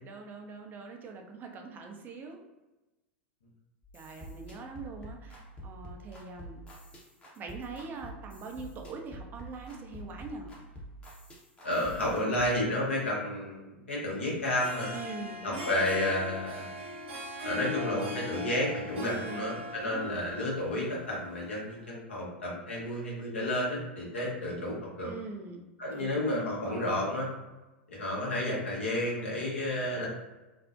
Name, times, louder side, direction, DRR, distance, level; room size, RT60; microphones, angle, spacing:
voice 1, 0.0-2.4 3.9-6.6 7.4-10.5 14.9-15.9 19.1-20.3 25.0-26.3 26.7-27.1, right 4 dB, 30° right, 3 dB, 0.4 m, -43 dB
sound 1, 3.8-12.4, right 1 dB, 15° left, 0.7 m, -47 dB
voice 2, 11.6-14.9 15.4-16.7 17.4-25.1 25.8-27.3 27.9-30.1, left 1 dB, 75° left, -4 dB, 0.9 m, -31 dB
Harp, 14.4-21.8, left 2 dB, 70° right, 0.7 m, -40 dB
2.5 x 2.0 x 2.4 m, 1.1 s
figure-of-eight pair, 90°, 6 cm